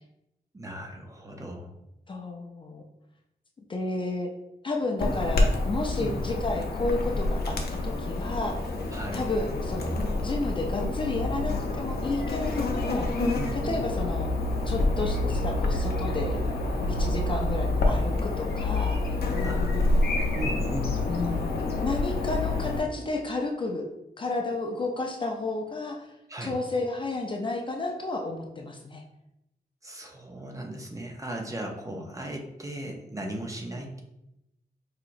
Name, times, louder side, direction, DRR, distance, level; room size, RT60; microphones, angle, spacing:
voice 1, 0.5-1.7 6.0-6.2 8.9-9.2 13.3-13.8 19.4-20.0 20.4-20.9 26.3-26.5 29.8-34.0, right 1 dB, 20° right, 1 dB, 0.5 m, -37 dB
voice 2, 2.1-2.8 3.7-4.3 4.6-7.6 7.8-8.6 9.1-9.9 10.2-13.1 13.5-14.3 14.7-16.4 16.9-19.0 21.1-23.9 24.2-26.1 26.4-29.0 31.9-32.0 33.8-34.0, left 2 dB, 30° left, 1 dB, 0.4 m, -31 dB
Chirp tweet / Buzz, 5.0-22.8, left 2 dB, 80° left, 0.6 m, -27 dB
4.9 x 2.8 x 2.5 m, 0.87 s
wide cardioid pair, 170°, 16 cm